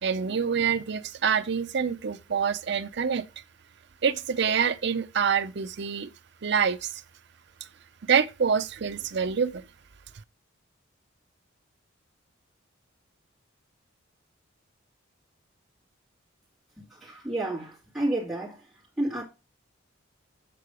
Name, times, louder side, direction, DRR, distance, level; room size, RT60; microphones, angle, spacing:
voice 1, 0.0-3.2 4.0-6.1 6.4-7.0 8.1-9.6, right 6 dB, 55° right, 0.5 m, -26 dB
voice 2, 16.8-18.7 19.0-19.2, right 1 dB, 5° right, 2.5 m, -31 dB
8.4 x 3.8 x 4.8 m
head